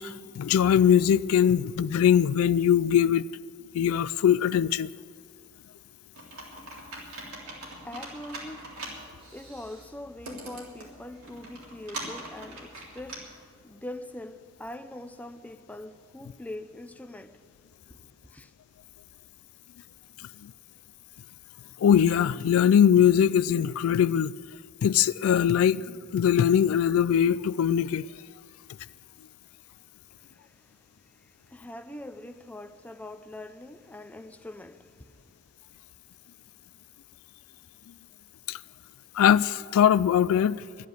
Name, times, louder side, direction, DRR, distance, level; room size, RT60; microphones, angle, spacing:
voice 1, 0.0-3.3 3.7-4.9 20.4-20.5 21.8-24.3 24.8-28.1 38.5-38.6 39.1-40.6, left 9 dB, 75° left, 0.3 m, -21 dB
Computer keyboard, 6.1-13.2, right 2 dB, 85° right, 3.4 m, -42 dB
voice 2, 7.3-17.4 17.9-18.5 30.2-35.3, left 1 dB, 5° left, 0.5 m, -43 dB
11.5 x 10.0 x 9.4 m
head